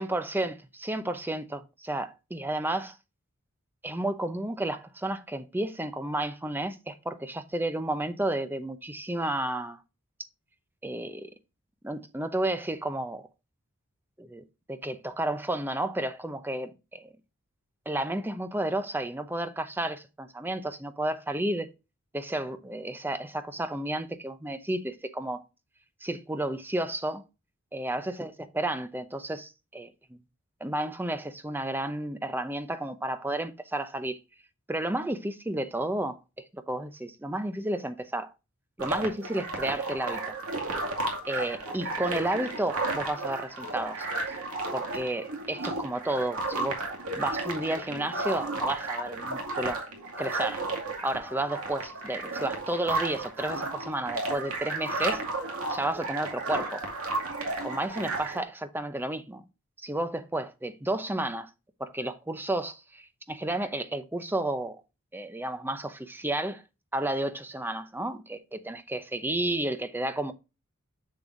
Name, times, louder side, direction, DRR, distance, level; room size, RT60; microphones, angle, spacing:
voice 1, 0.0-3.0 3.8-9.8 10.8-11.3 11.8-13.3 14.2-17.1 17.9-21.7 22.1-25.4 26.0-27.2 27.7-30.2 30.6-34.2 34.7-36.2 36.5-38.3 38.8-40.3 41.3-44.1 44.7-46.8 47.2-49.8 50.2-50.7 51.0-55.2 55.7-56.9 57.6-59.4 59.8-61.5 61.8-64.8 65.1-66.6 66.9-70.3, right 1 dB, 10° right, 0.7 m, -32 dB
sound 1, 38.8-58.4, right 2 dB, 75° right, 2.4 m, -33 dB
7.0 x 6.8 x 2.6 m
head